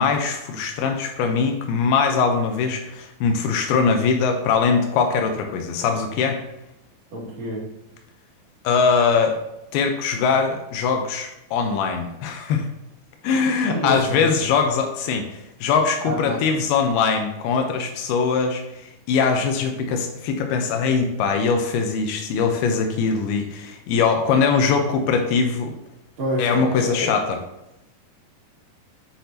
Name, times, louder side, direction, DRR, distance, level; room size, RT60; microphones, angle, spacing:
voice 1, 0.0-6.4 8.6-9.4 9.7-12.7 13.2-25.8 26.4-27.4, left 5 dB, 85° left, 4 dB, 2.6 m, -22 dB
voice 2, 7.1-7.7 13.7-14.2 16.0-16.4 26.2-27.2, equal, 50° right, -5 dB, 2.9 m, -28 dB
8.3 x 5.9 x 2.7 m, 0.88 s
omnidirectional pair, 4.5 m